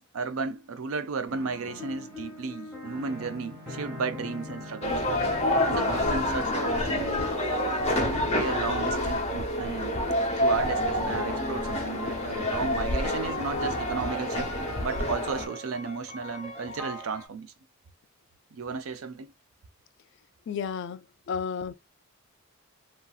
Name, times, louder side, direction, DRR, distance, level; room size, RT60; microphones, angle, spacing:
voice 1, 0.1-5.0 5.6-7.2 8.0-10.0 10.4-14.5 14.8-17.5 18.5-19.3, right 4 dB, 70° right, 0.5 m, -34 dB
sound 1, 1.3-17.3, right 1 dB, ahead, 1.4 m, -40 dB
sound 2, 4.8-15.5, left 1 dB, 30° left, 0.8 m, -28 dB
voice 2, 20.5-21.7, left 6 dB, 55° left, 0.3 m, -32 dB
2.8 x 2.7 x 2.3 m
head